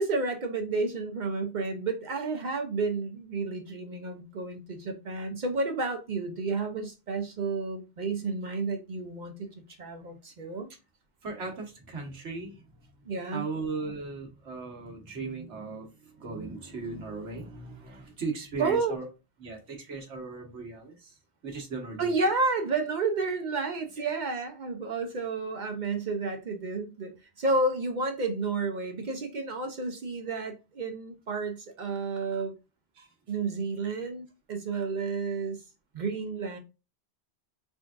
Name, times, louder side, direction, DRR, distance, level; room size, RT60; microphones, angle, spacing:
voice 1, 0.0-9.5 9.8-10.7 13.1-13.5 18.6-19.0 22.0-27.1 27.4-32.5 33.3-35.6 35.9-36.6, right 3 dB, 55° right, 0.6 m, -31 dB
voice 2, 11.2-12.9 13.3-19.1 19.4-21.2 21.4-22.3 24.0-24.1 33.0-33.1, right 4 dB, 80° right, 1.4 m, -38 dB
3.8 x 3.4 x 2.4 m
omnidirectional pair, 1.2 m